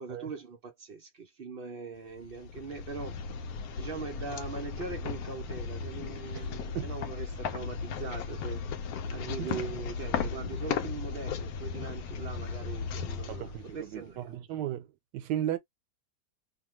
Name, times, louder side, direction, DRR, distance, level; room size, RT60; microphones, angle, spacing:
voice 1, 0.0-3.2 3.8-8.6 9.1-14.3, right 4 dB, 70° right, 0.5 m, -41 dB
sound 1, 2.2-14.2, left 6 dB, 70° left, 1.0 m, -36 dB
voice 2, 13.3-14.9 15.1-15.6, right 12 dB, 90° right, 1.2 m, -35 dB
2.8 x 2.3 x 3.0 m
omnidirectional pair, 1.8 m